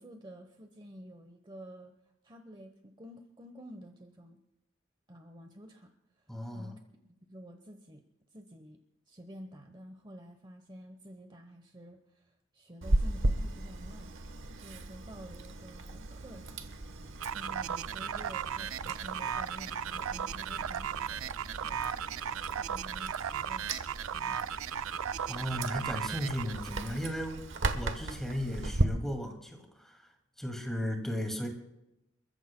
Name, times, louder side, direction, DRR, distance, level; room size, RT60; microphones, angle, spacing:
voice 1, 0.0-1.9 2.2-4.4 5.1-5.9 6.2-6.8 7.3-8.0 8.3-8.8 9.1-14.1 14.5-16.7 17.3-21.4 21.6-21.9 22.6-23.8 24.1-24.6, equal, 25° right, 5 dB, 1.0 m, -50 dB
voice 2, 6.3-6.7 25.3-27.4 27.7-30.1 30.4-31.5, equal, ahead, 3 dB, 2.2 m, -36 dB
Chewing mastication, 12.8-28.8, right 2 dB, 65° right, 1.1 m, -36 dB
sound 1, 17.2-26.9, right 8 dB, 90° right, 0.5 m, -36 dB
29.5 x 14.5 x 2.2 m, 0.89 s
head